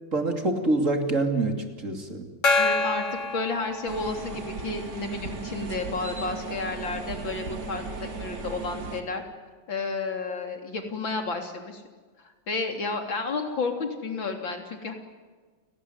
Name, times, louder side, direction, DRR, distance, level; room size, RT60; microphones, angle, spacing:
voice 1, 0.1-2.3, right 2 dB, 40° right, 5 dB, 3.3 m, -26 dB
Gong, 2.4-4.5, left 3 dB, 40° left, 1.9 m, -26 dB
voice 2, 2.6-3.1 3.3-9.2 9.7-11.8 12.2-14.9, left 3 dB, 85° left, 5 dB, 4.2 m, -31 dB
sound 1, 3.9-9.0, right 5 dB, 60° right, 2.9 m, -37 dB
30.0 x 19.0 x 9.7 m, 1.4 s
omnidirectional pair, 2.1 m